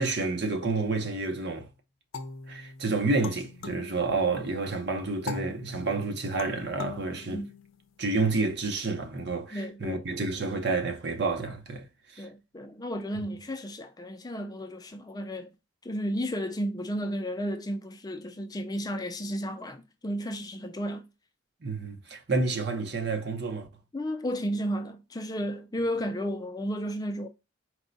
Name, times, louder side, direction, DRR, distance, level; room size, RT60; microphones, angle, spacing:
voice 1, 0.0-1.7 2.5-7.4 8.0-12.3 21.6-23.7, right 3 dB, 55° right, 0.8 m, -29 dB
sound 1, 2.1-4.6 5.3-8.1, left 4 dB, 85° left, 0.5 m, -41 dB
voice 2, 9.5-10.0 12.2-15.5 15.8-21.1 23.9-27.3, equal, 20° left, 0.4 m, -33 dB
4.5 x 2.2 x 3.9 m
head